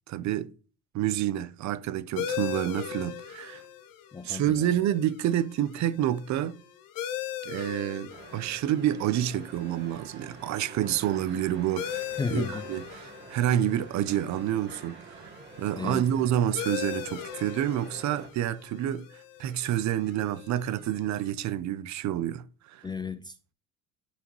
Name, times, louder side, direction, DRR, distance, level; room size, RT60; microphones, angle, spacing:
voice 1, 0.1-0.5 0.9-3.6 4.2-6.6 7.5-15.3 15.6-19.1 19.4-22.8, right 11 dB, 50° right, 0.7 m, -28 dB
sound 1, 2.2-21.3, left 10 dB, 70° left, 1.1 m, -40 dB
voice 2, 4.1-4.7 12.2-12.6 15.7-16.1 22.8-23.5, left 5 dB, 15° left, 0.3 m, -33 dB
sound 2, 8.1-18.3, right 5 dB, 30° right, 1.6 m, -48 dB
11.5 x 4.9 x 3.1 m
cardioid pair, 120°, 35 cm